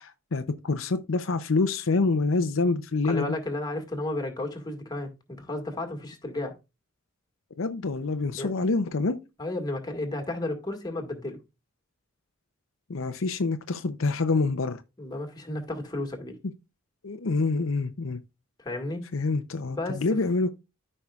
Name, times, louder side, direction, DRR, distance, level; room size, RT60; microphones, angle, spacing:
voice 1, 0.0-3.3 7.6-9.2 12.9-14.8 17.0-18.2 19.1-20.5, left 3 dB, 75° left, 0.7 m, -26 dB
voice 2, 3.1-6.5 8.4-8.5 9.4-11.4 15.0-16.4 18.6-19.0 19.7-20.0, left 2 dB, 20° left, 1.9 m, -33 dB
13.5 x 5.5 x 2.4 m
head